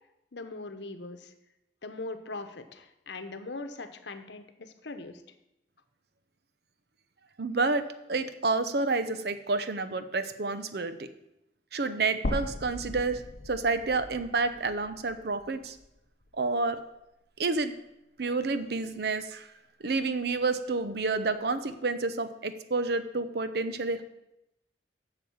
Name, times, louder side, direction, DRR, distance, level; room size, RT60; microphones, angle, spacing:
voice 1, 0.3-1.3 1.8-5.2, left 3 dB, 80° left, 9 dB, 1.0 m, -40 dB
voice 2, 7.4-11.1 11.7-15.8 16.3-16.8 17.4-17.8 18.2-19.5 19.8-24.0, right 3 dB, 60° right, 11 dB, 0.7 m, -29 dB
sound 1, 12.2-16.4 16.8-16.9 18.3-18.4, left 1 dB, 50° left, 0.7 m, -38 dB
8.5 x 6.8 x 7.2 m, 0.88 s
head